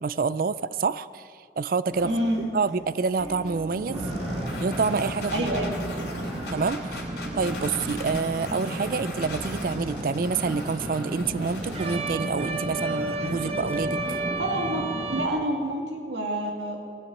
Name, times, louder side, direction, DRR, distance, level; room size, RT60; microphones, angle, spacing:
voice 1, 0.0-2.1 2.4-4.0 4.6-5.5 6.5-7.1 7.3-14.2, right 4 dB, 50° right, 16 dB, 0.4 m, -28 dB
sound 1, 1.9-14.3, right 1 dB, 5° right, 3.2 m, -40 dB
voice 2, 2.0-2.5 5.3-5.7 14.4-16.8, right 1 dB, 85° right, 1 dB, 2.5 m, -28 dB
sound 2, 3.9-15.3, right 1 dB, 35° right, 1.0 m, -33 dB
sound 3, 4.0-12.0, left 2 dB, 70° left, 2.6 m, -39 dB
17.0 x 10.5 x 7.7 m, 2.2 s
head